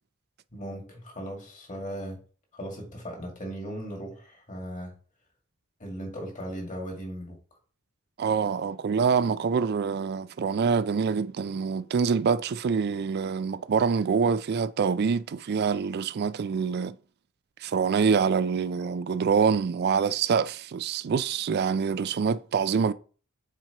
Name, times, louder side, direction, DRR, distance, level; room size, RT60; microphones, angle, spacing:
voice 1, 0.5-2.2 2.5-4.9 5.8-7.4, equal, 35° left, 2.0 m, -37 dB
voice 2, 8.2-17.0 17.6-22.9, right 6 dB, 45° right, 0.3 m, -25 dB
7.3 x 4.5 x 2.9 m
head